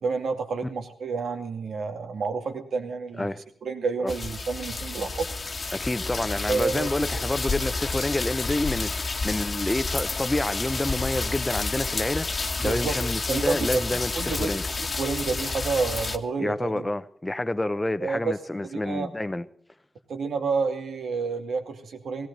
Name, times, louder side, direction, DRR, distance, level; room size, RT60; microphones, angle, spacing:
voice 1, 0.0-3.3 3.6-5.3 6.5-6.9 12.6-12.9 13.3-16.8 18.0-18.2 18.6-19.1 20.1-22.3, right 4 dB, 80° right, 2.4 m, -29 dB
sound 1, 4.1-16.2, left 3 dB, 40° left, 1.4 m, -30 dB
voice 2, 5.7-12.3 12.6-14.6 16.4-19.4, left 1 dB, 15° left, 0.8 m, -28 dB
18.0 x 17.0 x 4.1 m
wide cardioid pair, 100°, 0 cm